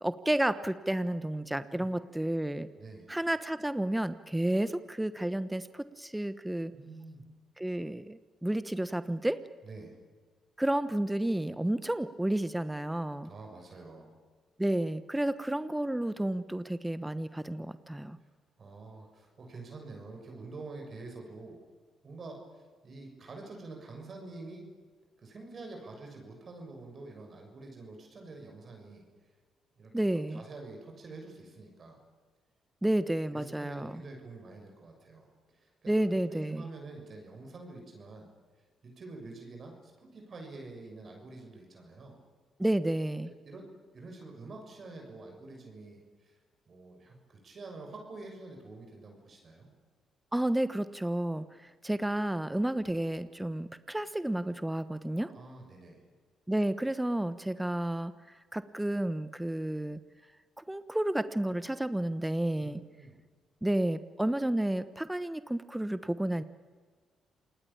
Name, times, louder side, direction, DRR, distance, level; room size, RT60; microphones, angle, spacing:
voice 1, 0.0-2.7 3.1-6.7 7.6-9.4 10.6-13.3 14.6-18.2 29.9-30.4 32.8-34.0 35.9-36.7 42.6-43.3 50.3-55.3 56.5-58.1 58.5-60.0 60.7-62.8 63.6-66.4, right 1 dB, 10° right, 13 dB, 1.2 m, -31 dB
voice 2, 1.5-1.9 2.8-3.1 6.7-7.2 9.6-10.0 13.2-14.1 18.6-21.6 22.0-24.7 25.2-29.0 29.8-29.9 30.3-32.0 33.3-35.3 35.5-38.3 38.8-42.2 43.2-43.7 43.9-46.4 46.7-49.7 55.1-56.0 62.6-63.2, right 3 dB, 50° right, 2 dB, 6.7 m, -47 dB
28.0 x 19.5 x 8.7 m, 1.5 s
hypercardioid pair, 50°, 0 cm